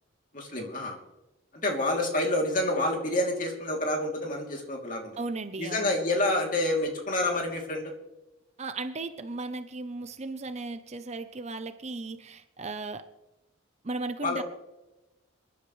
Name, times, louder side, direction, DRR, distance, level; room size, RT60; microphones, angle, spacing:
voice 1, 0.3-1.0 1.5-5.1 5.6-7.9 14.2-14.4, left 1 dB, 40° left, 1 dB, 3.1 m, -28 dB
voice 2, 5.2-5.9 8.6-13.1 13.8-14.4, right 3 dB, 35° right, 10 dB, 0.7 m, -36 dB
27.0 x 11.0 x 3.2 m, 1.0 s
head